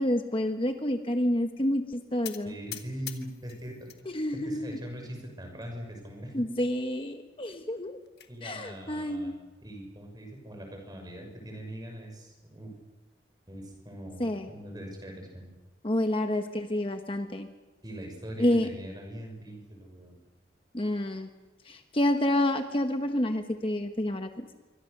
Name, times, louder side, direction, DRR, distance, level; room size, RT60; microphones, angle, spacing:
voice 1, 0.0-2.5 4.1-4.6 6.3-8.0 8.4-9.3 14.2-14.5 15.8-17.5 18.4-18.7 20.7-21.3 21.7-24.4, left 1 dB, 30° left, 6 dB, 1.1 m, -28 dB
sound 1, 2.2-4.0 4.4-5.0 5.6-5.7 6.0-6.1 6.5-6.6 7.7-8.3, left 13 dB, 60° left, 1.6 m, -44 dB
voice 2, 2.4-3.9 4.3-6.4 8.3-9.3 9.6-12.7 13.5-15.5 17.8-20.2, right 1 dB, 25° right, 3 dB, 5.9 m, -41 dB
27.0 x 24.0 x 6.7 m, 1.2 s
head